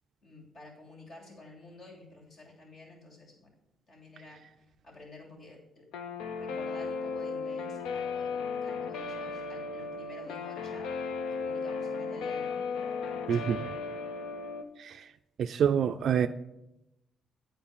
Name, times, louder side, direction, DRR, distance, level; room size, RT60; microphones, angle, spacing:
voice 1, 0.2-3.5 3.9-4.4 4.8-5.9 6.4-10.9 11.2-13.8, left 2 dB, 55° left, -1 dB, 3.0 m, -50 dB
Guitar, 5.9-14.6, left 4 dB, 90° left, 0.7 m, -35 dB
voice 2, 13.3-13.7 14.8-15.1 15.4-16.3, right 8 dB, 65° right, 8 dB, 0.3 m, -27 dB
8.6 x 4.6 x 7.1 m, 0.90 s
cardioid pair, 90°, 0 cm